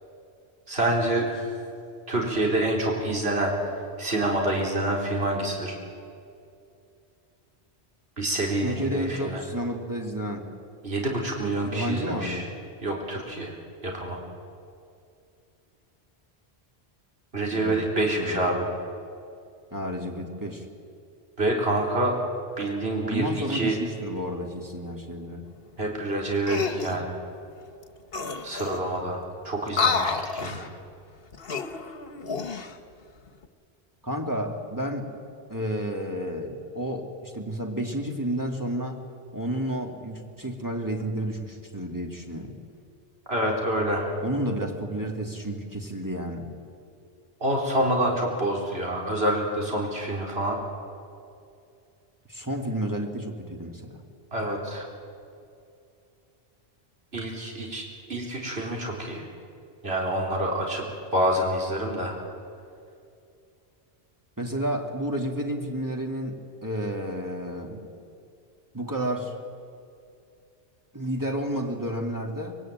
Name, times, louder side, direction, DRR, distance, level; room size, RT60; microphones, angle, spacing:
voice 1, 0.7-1.4 2.1-3.5 4.0-5.7 8.2-9.4 10.8-12.4 12.8-13.5 13.8-14.2 17.3-18.6 21.4-22.1 22.6-23.2 23.5-23.8 25.8-27.1 28.4-29.2 29.4-30.7 43.3-44.1 47.4-50.6 54.3-54.8 57.1-59.2 59.8-60.8 61.1-62.2, right 1 dB, 70° right, -1 dB, 4.1 m, -27 dB
voice 2, 8.6-10.5 11.6-12.5 17.5-17.9 18.1-18.6 19.7-20.7 23.0-25.5 34.0-35.1 35.5-39.0 39.3-42.5 44.2-46.5 52.3-54.0 64.4-67.8 68.7-69.3 70.9-72.6, right 1 dB, 20° right, 1 dB, 2.7 m, -31 dB
sound 1, 26.4-27.0 27.8-27.9 28.1-29.0 29.7-30.7 31.3-32.7 33.3-33.5, left 5 dB, 65° left, 1.5 m, -29 dB
24.5 x 22.0 x 9.2 m, 2.5 s
omnidirectional pair, 1.1 m